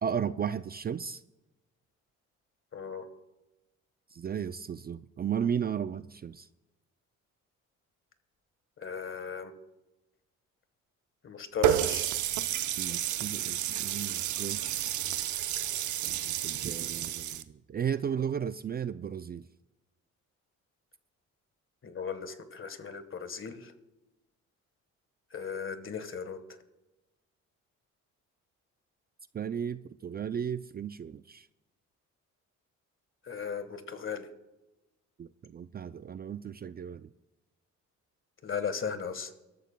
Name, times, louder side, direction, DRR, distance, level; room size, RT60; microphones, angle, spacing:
voice 1, 0.0-1.2 4.1-6.5 12.8-14.8 16.4-19.5 29.3-31.5 35.2-37.1, right 8 dB, 30° right, 13 dB, 0.4 m, -34 dB
voice 2, 2.7-3.1 8.8-9.5 11.2-12.1 21.8-23.7 25.3-26.4 33.2-34.3 38.4-39.3, left 6 dB, 45° left, 11 dB, 1.4 m, -36 dB
Water tap faucet, 11.6-17.4, right 11 dB, 75° right, 0.7 m, -31 dB
24.0 x 13.5 x 2.2 m, 1.0 s
cardioid pair, 90°, 30 cm